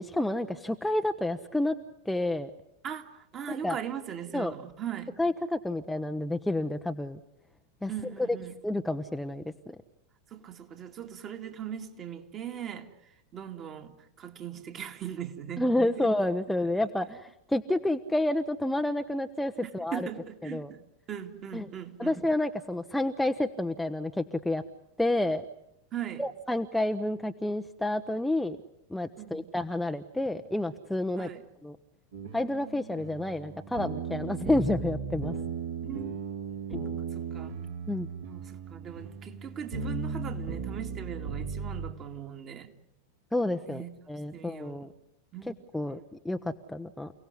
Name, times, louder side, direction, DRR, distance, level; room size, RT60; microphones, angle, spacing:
voice 1, 0.0-1.7 2.1-2.5 3.5-3.8 4.3-4.5 5.2-7.2 7.8-7.9 8.6-9.8 15.6-20.1 20.4-20.7 21.5-21.7 22.0-24.6 25.0-25.4 26.2-28.6 28.9-31.3 31.6-31.8 32.3-35.3 36.7-36.8 37.9-38.1 43.3-44.9 45.5-46.0 46.2-47.1, left 1 dB, 5° left, 0.9 m, -29 dB
voice 2, 2.8-5.1 7.9-8.5 10.3-15.7 16.0-16.1 19.6-22.2 25.9-26.2 29.2-29.5 31.2-31.4 35.8-36.2 37.0-37.7 38.3-42.7 43.6-44.0 44.3-44.9 45.3-45.5, right 9 dB, 30° right, 2.4 m, -40 dB
sound 1, 32.1-41.9, right 5 dB, 65° right, 4.8 m, -36 dB
29.5 x 18.0 x 9.8 m
figure-of-eight pair, 90°, 0 cm